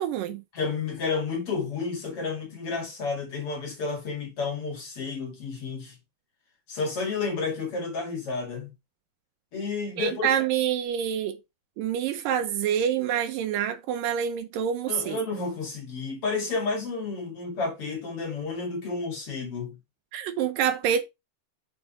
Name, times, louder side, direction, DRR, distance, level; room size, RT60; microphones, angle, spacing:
voice 1, 0.0-0.4 10.0-11.4 11.8-15.2 20.1-21.0, right 9 dB, 75° right, 2.3 m, -27 dB
voice 2, 0.5-6.0 6.7-8.7 9.5-10.3 14.9-19.8, left 4 dB, 45° left, 2.8 m, -31 dB
7.0 x 5.0 x 4.2 m
omnidirectional pair, 4.2 m